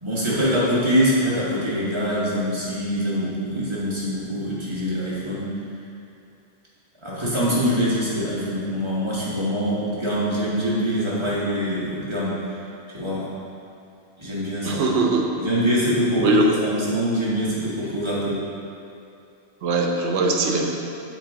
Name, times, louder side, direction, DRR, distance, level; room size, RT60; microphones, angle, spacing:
voice 1, 0.0-5.5 7.0-12.4 12.9-13.3 14.2-14.8 15.4-18.4, equal, 25° right, -8 dB, 1.4 m, -24 dB
voice 2, 14.6-15.3 16.2-16.5 19.6-20.8, right 2 dB, 80° right, 1 dB, 1.0 m, -21 dB
6.6 x 3.9 x 3.7 m, 2.7 s
omnidirectional pair, 1.2 m